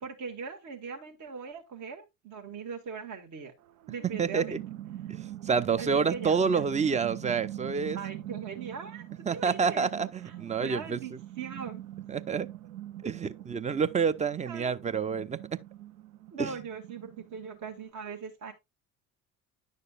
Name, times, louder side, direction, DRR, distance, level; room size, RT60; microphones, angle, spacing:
voice 1, 0.0-3.5 3.9-4.6 5.8-6.7 7.9-11.8 14.5-14.8 16.3-18.5, right 6 dB, 45° right, 1.3 m, -40 dB
sound 1, 3.6-17.9, right 13 dB, 80° right, 0.6 m, -43 dB
voice 2, 4.2-4.6 5.1-8.0 9.3-11.2 12.1-12.5 13.0-15.6 16.4-16.5, right 6 dB, 15° right, 0.5 m, -28 dB
10.0 x 6.6 x 2.3 m
hypercardioid pair, 60°, 41 cm